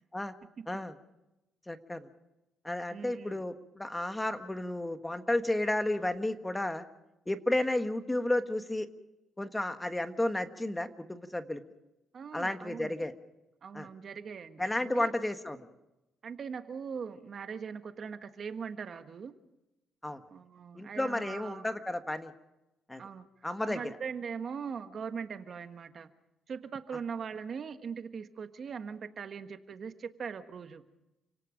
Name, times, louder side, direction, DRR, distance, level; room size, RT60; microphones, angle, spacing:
voice 1, 1.7-2.1 2.6-6.8 7.3-8.9 9.4-11.6 12.3-13.1 13.7-13.9 14.6-15.7 20.0-20.2 20.7-22.3 22.9-23.0 23.4-24.0, left 1 dB, 10° left, 8 dB, 1.5 m, -32 dB
voice 2, 2.9-3.4 12.1-12.9 13.6-15.1 16.2-19.3 20.3-21.7 23.0-23.3 23.7-26.1 26.5-30.8, right 6 dB, 50° right, 8 dB, 1.4 m, -40 dB
29.0 x 18.0 x 5.2 m, 0.93 s
cardioid pair, 90°, 0 cm